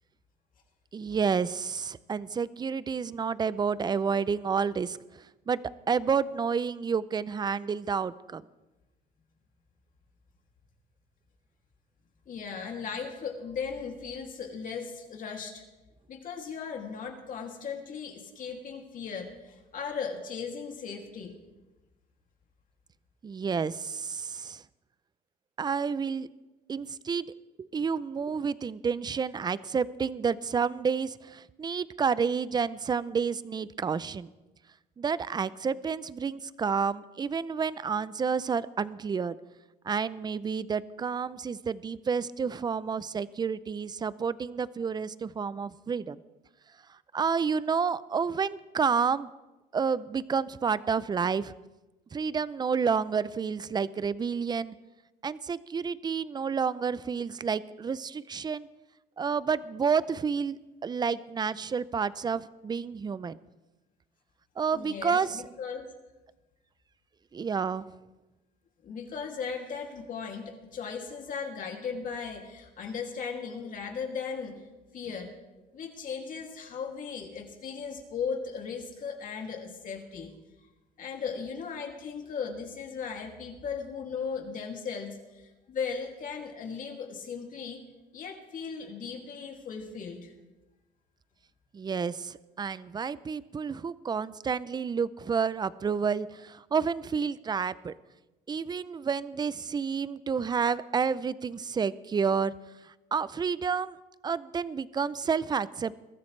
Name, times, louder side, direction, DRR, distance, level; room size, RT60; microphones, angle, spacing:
voice 1, 0.9-5.0 5.5-5.6 5.9-8.4 23.2-24.6 25.6-26.3 26.7-27.3 27.6-34.3 35.0-39.4 39.8-46.2 47.1-49.3 49.7-51.5 52.1-54.7 55.2-58.7 59.2-63.4 64.6-65.4 67.3-67.9 91.7-97.9 98.5-102.5 103.1-104.0 104.2-105.9, right 6 dB, 25° right, 18 dB, 0.5 m, -30 dB
voice 2, 12.3-15.6 16.1-21.3 64.7-65.9 68.8-74.5 74.9-75.3 75.7-80.3 81.0-87.8 88.1-90.3, left 6 dB, 50° left, 2 dB, 2.6 m, -37 dB
22.5 x 13.5 x 3.3 m, 1.1 s
cardioid pair, 110°, 17 cm